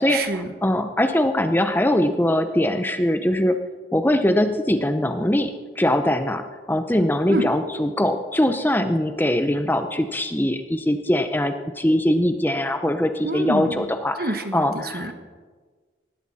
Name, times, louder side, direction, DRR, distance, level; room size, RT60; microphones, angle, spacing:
voice 1, 0.1-0.5 7.3-7.5 13.2-13.9 14.2-15.1, right 2 dB, 50° right, 7 dB, 1.3 m, -27 dB
voice 2, 0.6-3.6 3.9-15.1, left 1 dB, 10° left, 7 dB, 0.6 m, -22 dB
19.0 x 16.0 x 4.2 m, 1.4 s
head